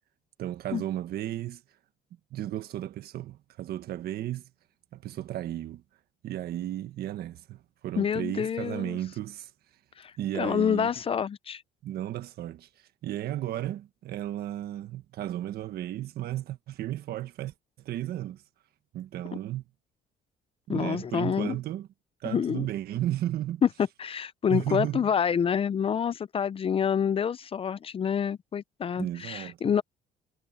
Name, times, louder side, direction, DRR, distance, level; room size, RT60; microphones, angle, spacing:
voice 1, 0.4-1.6 2.3-4.5 4.9-5.8 6.2-9.5 10.2-10.9 11.8-12.7 13.0-18.4 18.9-19.6 20.7-21.9 22.2-23.6 24.5-25.1 28.9-29.7, right 13 dB, 70° right, 1.5 m, -34 dB
voice 2, 8.0-9.0 10.0-11.6 20.7-21.6 22.2-22.7 23.6-23.7 24.0-29.8, left 7 dB, 35° left, 0.5 m, -27 dB
cardioid pair, 110°, 17 cm